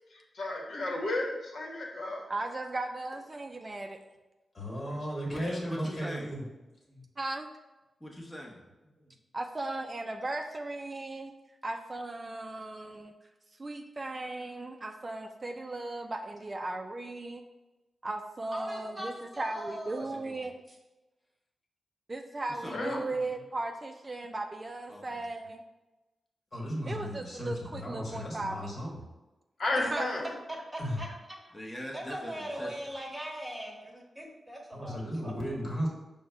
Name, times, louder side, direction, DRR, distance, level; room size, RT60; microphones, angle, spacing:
voice 1, 0.1-2.3 4.9-5.0 22.7-23.0 29.6-30.3, left 2 dB, 70° left, -2 dB, 0.9 m, -33 dB
voice 2, 2.3-4.0 7.2-7.5 9.3-11.3 11.6-13.1 13.6-17.4 18.0-20.5 22.1-25.6 26.9-28.8 29.9-30.1, right 2 dB, 35° right, 4 dB, 0.3 m, -37 dB
voice 3, 4.5-6.4 26.5-29.0 30.8-31.0 34.7-35.9, equal, 45° left, -3 dB, 1.5 m, -35 dB
voice 4, 5.3-6.3 8.0-8.6 20.0-20.4 22.5-23.0 24.9-25.2 31.5-32.7, equal, 10° left, -2 dB, 0.9 m, -41 dB
voice 5, 18.5-20.3 23.1-23.2 29.8-29.9 30.5-31.1 31.9-35.3, right 1 dB, 15° right, -1 dB, 1.1 m, -41 dB
5.0 x 2.1 x 4.7 m, 1.1 s
cardioid pair, 70°, 0 cm